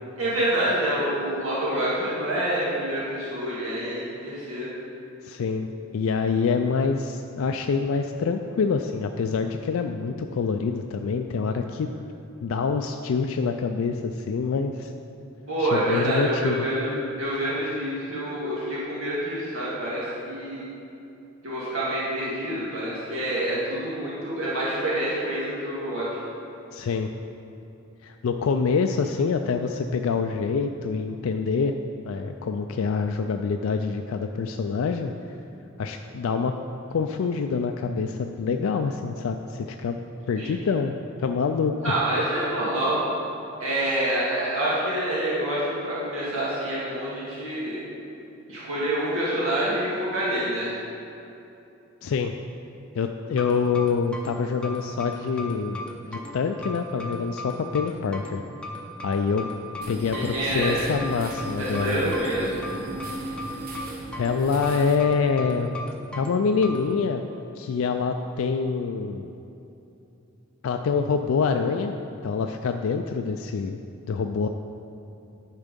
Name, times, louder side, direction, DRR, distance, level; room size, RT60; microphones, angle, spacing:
voice 1, 0.2-4.7 15.5-16.9 17.2-20.7 21.4-26.1 40.4-40.5 41.8-43.0 43.6-47.8 48.5-50.7 60.1-60.9 61.6-62.5, right 1 dB, 85° right, -8 dB, 1.9 m, -27 dB
voice 2, 5.2-5.7 5.9-11.9 12.4-14.9 15.6-16.7 26.7-27.1 28.0-31.7 32.1-35.1 35.8-36.5 36.9-40.0 40.3-42.0 52.0-52.3 53.0-58.4 59.0-59.5 59.9-62.1 63.1-63.2 64.2-65.7 66.1-67.2 67.6-69.3 70.6-71.9 72.2-73.8 74.1-74.5, left 5 dB, 75° left, 5 dB, 0.4 m, -26 dB
sound 1, 53.4-66.9, left 1 dB, 5° left, 0.6 m, -37 dB
sound 2, 59.8-65.0, right 1 dB, 45° right, 0.9 m, -37 dB
11.0 x 4.5 x 5.2 m, 2.9 s
head